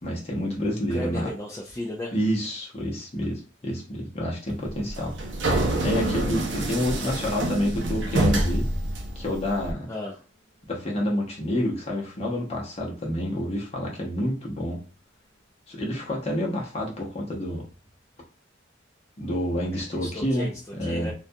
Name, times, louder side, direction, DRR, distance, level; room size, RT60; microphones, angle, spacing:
voice 1, 0.0-1.3 2.1-5.1 5.8-8.7 9.2-9.9 10.7-14.8 15.7-17.6 19.2-20.5 20.8-21.1, equal, 35° left, -2 dB, 0.8 m, -28 dB
voice 2, 0.9-2.1 9.9-10.2 19.7-21.1, left 1 dB, 15° left, -2 dB, 0.3 m, -35 dB
sound 1, 4.7-9.7, right 1 dB, 70° right, 0.5 m, -26 dB
sound 2, 5.9-14.5 15.2-15.3, left 1 dB, 80° left, 0.7 m, -43 dB
2.4 x 2.2 x 2.6 m, 0.37 s
head